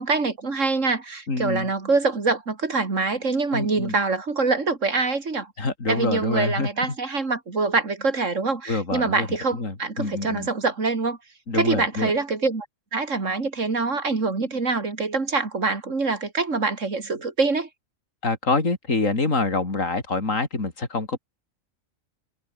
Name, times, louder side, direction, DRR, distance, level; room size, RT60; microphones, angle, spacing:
voice 1, 0.0-5.5 5.9-11.2 11.5-12.6 12.9-17.7, right 3 dB, 65° right, 3.2 m, -25 dB
voice 2, 1.3-1.7 3.5-3.9 5.6-6.7 8.7-9.3 9.5-10.5 11.5-12.1 18.2-21.2, left 3 dB, 70° left, 4.1 m, -26 dB
omnidirectional pair, 1.4 m